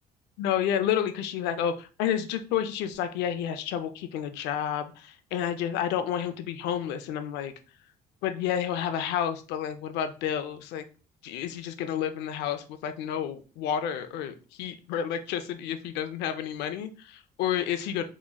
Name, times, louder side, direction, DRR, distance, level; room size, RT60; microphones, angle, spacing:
voice 1, 0.4-7.5 8.2-10.8 11.2-18.0, left 9 dB, 90° left, 9 dB, 0.5 m, -30 dB
3.7 x 3.0 x 2.2 m, 0.34 s
cardioid pair, 110°, 17 cm